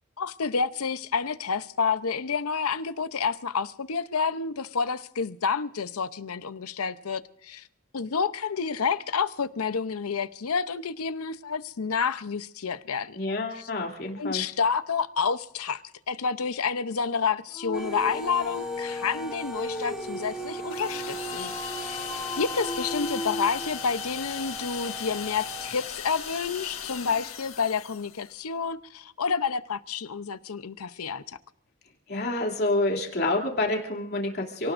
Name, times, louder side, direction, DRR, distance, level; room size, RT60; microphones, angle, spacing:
voice 1, 0.2-7.6 7.9-13.2 13.5-13.7 14.2-21.5 21.8-22.0 22.4-31.4, left 5 dB, 90° left, 0.7 m, -29 dB
voice 2, 13.1-14.4 32.1-34.7, left 2 dB, 50° left, 2.9 m, -28 dB
Dog, 17.5-23.9, left 1 dB, 20° left, 1.3 m, -35 dB
sound 1, 17.7-25.7, right 3 dB, 5° right, 1.0 m, -41 dB
sound 2, 20.7-28.3, left 8 dB, 70° left, 1.6 m, -37 dB
28.5 x 18.5 x 2.6 m
head